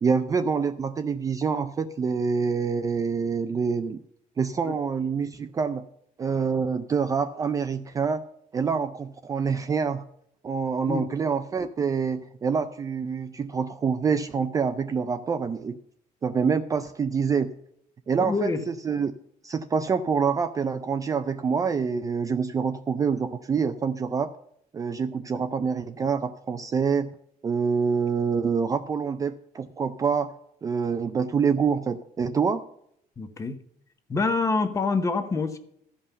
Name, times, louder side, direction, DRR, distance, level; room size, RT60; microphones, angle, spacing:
voice 1, 0.0-4.0 4.4-5.8 6.2-8.2 8.5-10.0 10.4-15.8 16.2-17.5 18.1-19.1 19.4-24.3 24.7-27.1 27.4-30.3 30.6-32.6, right 6 dB, 20° right, 9 dB, 0.4 m, -26 dB
voice 2, 18.2-18.6 33.2-33.6 34.1-35.6, left 4 dB, 20° left, 9 dB, 0.9 m, -26 dB
14.0 x 5.5 x 6.8 m, 0.71 s
cardioid pair, 165°, 16 cm